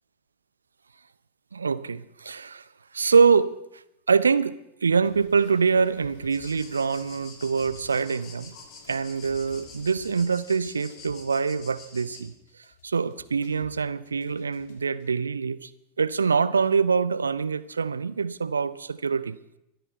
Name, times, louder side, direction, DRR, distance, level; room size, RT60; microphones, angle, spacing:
voice 1, 1.5-2.6 2.9-3.6 4.1-8.5 8.9-12.3 12.8-15.7 16.0-19.4, right 5 dB, 75° right, 16 dB, 0.6 m, -24 dB
sound 1, 5.0-15.1, left 6 dB, 55° left, 1.8 m, -52 dB
sound 2, 6.3-12.2, left 4 dB, 30° left, 7.3 m, -47 dB
24.5 x 9.2 x 4.6 m, 0.84 s
figure-of-eight pair, 90°, 0 cm